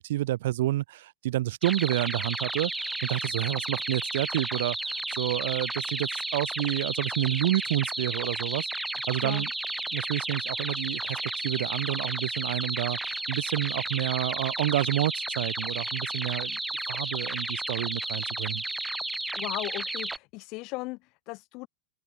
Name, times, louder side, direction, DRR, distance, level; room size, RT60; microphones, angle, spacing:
voice 1, 0.0-8.7 9.1-9.5 9.9-16.6 16.9-18.6, right 15 dB, 65° right, 6.8 m, -29 dB
sound 1, 1.6-20.2, right 2 dB, 5° right, 4.9 m, -33 dB
voice 2, 19.3-21.7, left 24 dB, 35° left, 6.1 m, -37 dB
open air
supercardioid pair, 170°, 0 cm